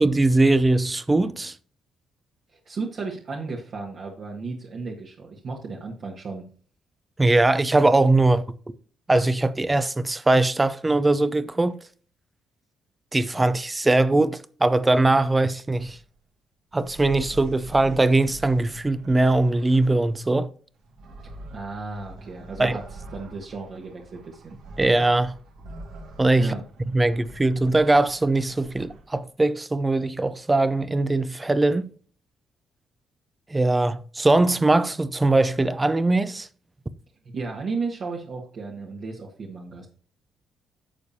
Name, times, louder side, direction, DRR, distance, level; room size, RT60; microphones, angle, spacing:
voice 1, 0.0-1.5 7.2-8.4 9.1-11.8 13.1-16.0 16.7-20.5 22.6-22.8 24.8-25.3 26.2-26.5 26.9-31.9 33.5-36.5, right 2 dB, 20° right, 0.6 m, -21 dB
voice 2, 2.6-6.4 21.5-24.6 26.4-26.6 37.3-39.9, right 4 dB, 55° right, 1.7 m, -34 dB
sound 1, 15.7-16.1 16.7-20.2 20.7-29.2, right 1 dB, 80° right, 2.1 m, -44 dB
11.0 x 6.9 x 2.8 m
cardioid pair, 90°, 0 cm